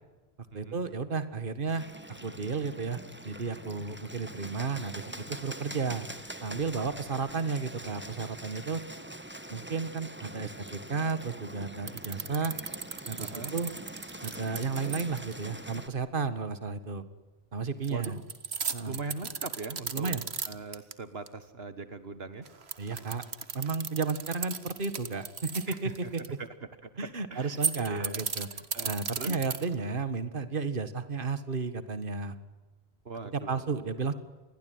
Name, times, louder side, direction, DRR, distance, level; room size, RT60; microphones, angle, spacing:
voice 1, 0.5-6.1 6.4-8.8 9.5-12.5 13.1-13.7 14.2-17.0 17.5-18.2 18.7-19.0 19.9-20.2 22.8-23.2 23.5-26.2 27.0-28.5 28.8-32.4 33.3-34.1, right 4 dB, 55° right, 12 dB, 1.9 m, -33 dB
Bird, 1.7-15.9, right 1 dB, 10° right, 1.8 m, -44 dB
sound 1, 11.9-15.3 17.8-20.9 21.3-21.4 22.5-26.3 27.5-29.9, right 5 dB, 90° right, 1.9 m, -36 dB
voice 2, 13.2-13.5 17.9-18.2 18.9-20.1 20.4-22.5 25.7-26.5 26.8-26.9 27.3-28.2 28.5-29.4 33.1-33.7, right 4 dB, 70° right, 12 dB, 1.8 m, -40 dB
29.0 x 21.5 x 9.5 m, 1.2 s
omnidirectional pair, 1.0 m